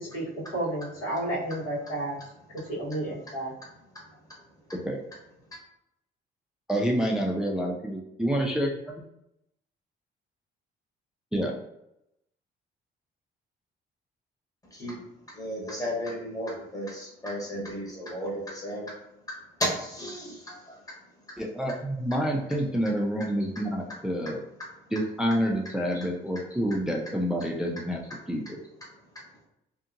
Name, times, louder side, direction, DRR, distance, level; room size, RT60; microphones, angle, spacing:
voice 1, 0.0-2.2 2.5-3.5, right 1 dB, 85° left, -7 dB, 1.3 m, -31 dB
voice 2, 6.7-8.7 11.3-11.5 21.4-24.4 24.9-28.0 28.3-28.6, equal, 5° right, 0 dB, 0.3 m, -28 dB
voice 3, 15.3-18.9 19.6-20.8 25.9-26.1, equal, 15° left, -4 dB, 1.1 m, -33 dB
2.6 x 2.6 x 2.5 m, 0.82 s
cardioid pair, 90°, 20 cm